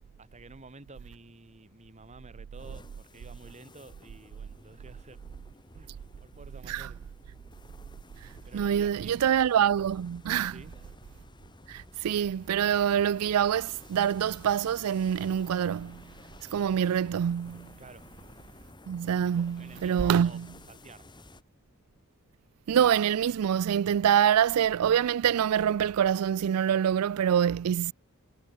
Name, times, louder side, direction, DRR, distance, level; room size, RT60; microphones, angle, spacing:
voice 1, 0.2-5.2 5.7-5.9 6.2-7.0 8.5-9.3 10.3-10.7 17.8-18.0 19.2-20.4 20.7-21.1, right 3 dB, 30° right, 1.6 m, -50 dB
sound 1, 2.6-21.4, left 1 dB, 20° left, 5.9 m, -53 dB
voice 2, 8.2-10.6 11.7-16.0 16.5-17.7 18.9-20.4 22.7-27.9, right 9 dB, 85° right, 0.4 m, -25 dB
head